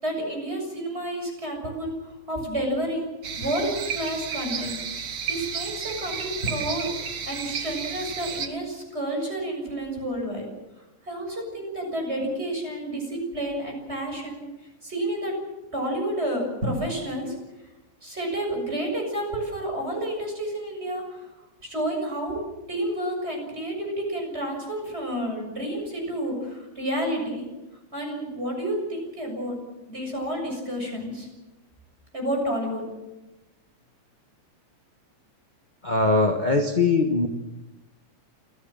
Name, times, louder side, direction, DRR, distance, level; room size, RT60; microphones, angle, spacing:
voice 1, 0.0-3.1 3.4-4.8 5.3-10.5 11.0-14.4 14.8-15.3 15.7-17.3 18.0-21.3 21.6-27.5 27.9-29.6 29.8-31.3 32.1-32.9, right 1 dB, 20° right, 2 dB, 7.3 m, -30 dB
sound 1, 3.2-8.5, right 6 dB, 50° right, 2.2 m, -32 dB
voice 2, 35.8-37.3, left 3 dB, 30° left, 3 dB, 0.8 m, -21 dB
28.0 x 16.0 x 7.6 m, 1.1 s
omnidirectional pair, 3.3 m